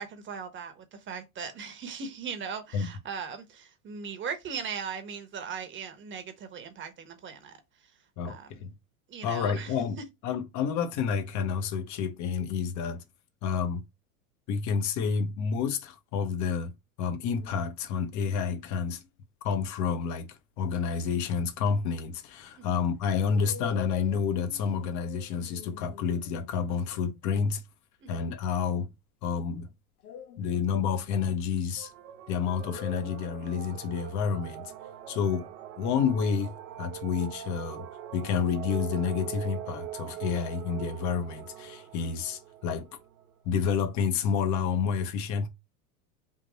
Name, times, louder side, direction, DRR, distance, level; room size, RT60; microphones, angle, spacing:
voice 1, 0.0-7.5 8.3-8.6 9.1-9.7 22.6-22.7 28.0-28.2, right 6 dB, 25° right, 1.1 m, -39 dB
voice 2, 8.2-8.7 9.2-10.0 10.2-13.0 13.4-13.8 14.5-16.7 17.0-19.0 19.4-27.6 28.1-28.9 29.2-29.7 30.4-31.9 32.3-34.7 35.1-35.5 35.8-37.9 38.1-42.9 43.4-45.5, left 6 dB, 40° left, 0.9 m, -29 dB
sound 1, 17.3-17.7 18.5-19.1 22.1-22.2 23.3-27.2 30.0-31.3 32.4-33.7, left 10 dB, 90° left, 0.6 m, -46 dB
sound 2, 31.8-43.6, right 12 dB, 65° right, 0.8 m, -42 dB
3.7 x 2.5 x 4.0 m
hypercardioid pair, 105°, 44 cm